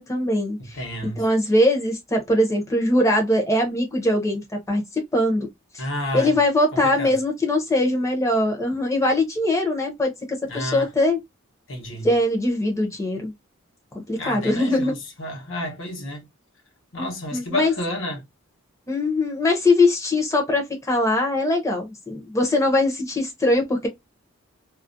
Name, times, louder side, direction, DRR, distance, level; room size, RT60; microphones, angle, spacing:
voice 1, 0.0-5.5 5.7-5.8 6.1-11.2 12.0-13.3 13.9-14.9 17.0-17.7 18.9-23.9, left 1 dB, 15° left, 0.6 m, -22 dB
voice 2, 0.6-1.2 5.8-6.4 6.8-7.2 10.5-10.9 11.7-12.1 14.1-16.3 16.9-18.2, left 1 dB, 65° left, 0.9 m, -30 dB
2.4 x 2.1 x 2.5 m
head